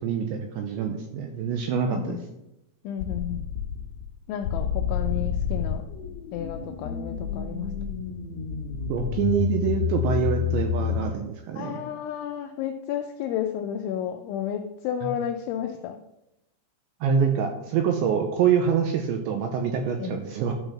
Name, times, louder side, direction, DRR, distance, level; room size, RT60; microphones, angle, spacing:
voice 1, 0.0-2.2 8.9-11.8 15.0-15.1 17.0-20.5, right 7 dB, 80° right, 4 dB, 2.6 m, -25 dB
voice 2, 2.8-3.4 4.3-5.8 6.3-7.7 11.6-16.0 20.0-20.2, left 9 dB, 85° left, 5 dB, 2.6 m, -32 dB
sound 1, 3.0-4.1 4.4-11.0, left 8 dB, 60° left, 2.9 m, -29 dB
12.0 x 5.5 x 5.9 m, 0.90 s
omnidirectional pair, 6.0 m